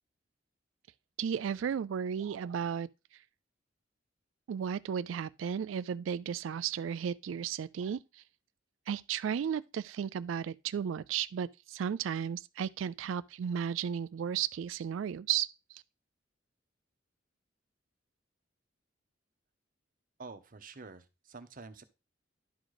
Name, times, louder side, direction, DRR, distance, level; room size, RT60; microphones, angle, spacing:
voice 1, 1.2-2.9 4.5-8.2 8.9-15.8, right 8 dB, 80° right, 0.3 m, -34 dB
voice 2, 20.2-21.8, right 4 dB, 45° right, 0.9 m, -48 dB
11.0 x 4.0 x 4.8 m
head